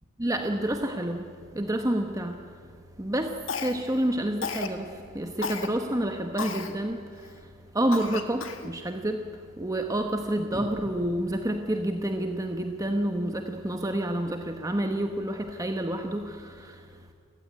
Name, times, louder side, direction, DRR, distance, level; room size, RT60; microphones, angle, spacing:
voice 1, 0.2-2.6 3.0-17.0, right 1 dB, 15° right, 4 dB, 1.2 m, -29 dB
Cough, 3.5-4.0 4.4-4.8 5.4-5.7 6.4-6.7 7.3-7.4 7.9-8.7, left 5 dB, 70° left, 1.8 m, -33 dB
29.5 x 15.5 x 9.6 m, 2.2 s
head